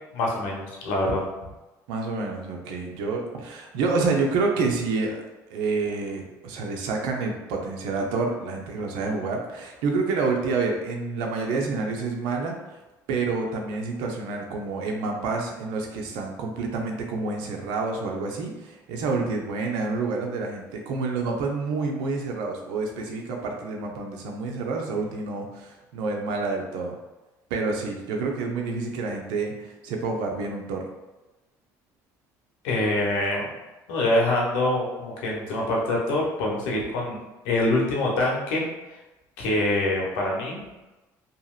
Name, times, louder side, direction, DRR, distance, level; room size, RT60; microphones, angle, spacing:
voice 1, 0.1-1.2 32.6-33.5 33.9-37.2 37.4-38.7 39.4-40.6, left 1 dB, 90° left, -2 dB, 0.8 m, -25 dB
voice 2, 1.9-5.2 5.5-12.8 13.1-26.9 27.5-30.9, right 3 dB, 85° right, 1 dB, 0.5 m, -28 dB
2.8 x 2.8 x 2.4 m, 1.1 s
supercardioid pair, 85°, 8 cm